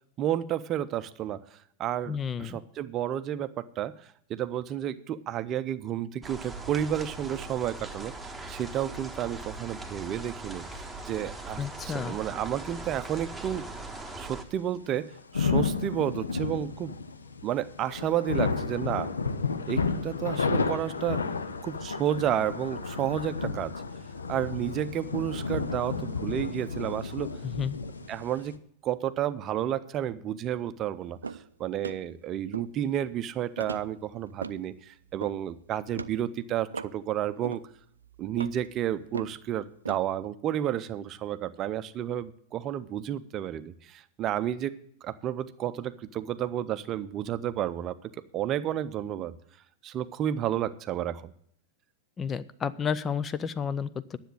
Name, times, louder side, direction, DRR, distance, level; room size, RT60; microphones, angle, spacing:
voice 1, 0.2-1.4 1.8-3.9 4.3-13.7 14.2-16.9 17.4-19.1 19.6-21.3 21.6-23.7 24.3-27.3 28.1-37.6 38.2-48.0 48.3-49.3 49.8-51.3, right 11 dB, 30° right, 13 dB, 0.6 m, -31 dB
voice 2, 2.1-2.6 11.6-12.2 27.4-27.8 52.2-54.2, left 7 dB, 20° left, 15 dB, 0.5 m, -31 dB
sound 1, 6.2-14.4, right 2 dB, 5° right, 1.3 m, -40 dB
sound 2, 14.9-28.6, left 4 dB, 75° left, 0.7 m, -32 dB
sound 3, 31.2-31.5 31.8-32.1 32.5-33.1 33.6-34.6 35.1-35.5 35.9-36.2 36.7-37.0 37.4-37.7 38.0-39.4 39.8-40.0, right 4 dB, 75° right, 0.4 m, -38 dB
10.0 x 7.2 x 9.0 m, 0.66 s
figure-of-eight pair, 90°, 0 cm